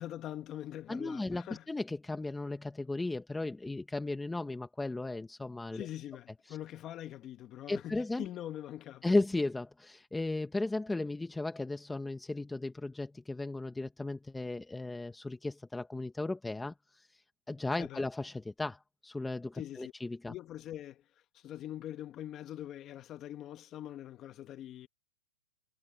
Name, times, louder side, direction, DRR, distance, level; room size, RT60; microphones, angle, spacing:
voice 1, 0.0-1.6 5.7-9.1 17.8-18.0 19.5-19.9 20.3-21.0 21.3-24.9, left 12 dB, 20° left, 1.6 m, -43 dB
voice 2, 0.9-5.9 6.5-6.6 7.7-8.2 9.0-17.2 17.5-20.3, left 2 dB, 5° left, 0.9 m, -35 dB
hypercardioid pair, 160°, 0 cm